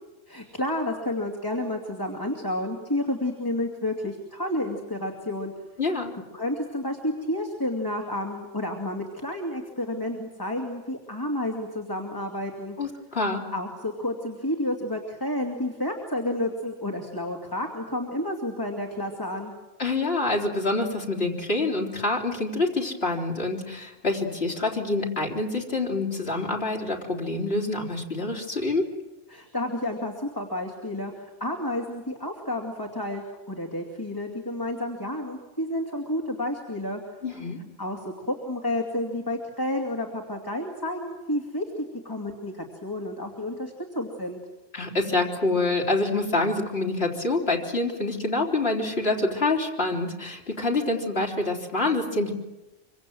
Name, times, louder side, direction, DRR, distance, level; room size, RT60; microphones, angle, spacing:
voice 1, 0.3-5.5 6.3-12.8 13.5-19.5 29.3-37.0 37.8-44.4, left 1 dB, 15° left, 0 dB, 2.6 m, -30 dB
voice 2, 5.8-6.1 12.8-13.4 19.8-28.9 37.2-37.6 44.7-52.3, left 2 dB, 50° left, -1 dB, 4.1 m, -26 dB
26.0 x 25.0 x 7.8 m, 1.1 s
omnidirectional pair, 1.3 m